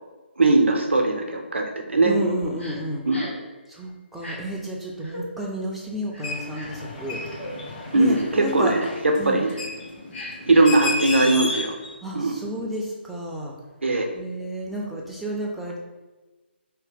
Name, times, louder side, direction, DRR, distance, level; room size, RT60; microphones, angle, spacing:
voice 1, 0.4-2.1 3.1-3.3 7.9-9.5 10.5-11.7 12.1-12.4 13.8-14.1, right 2 dB, 80° right, 3 dB, 0.5 m, -20 dB
voice 2, 2.0-3.1 3.7-7.2 7.9-8.7 9.2-9.4 12.0-13.5 14.1-15.8, right 1 dB, ahead, -4 dB, 0.3 m, -31 dB
Crying sobbing, 2.6-2.8 3.1-3.4 4.2-4.4 5.0-5.2 6.1-6.8 7.4-7.5 8.1-8.4 8.8-9.0 9.4-9.6 10.1-10.8 11.5-11.6, left 1 dB, 80° left, 0.9 m, -39 dB
sound 1, 6.2-11.9, left 2 dB, 40° left, 0.7 m, -33 dB
2.7 x 2.1 x 3.6 m, 1.2 s
figure-of-eight pair, 145°, 6 cm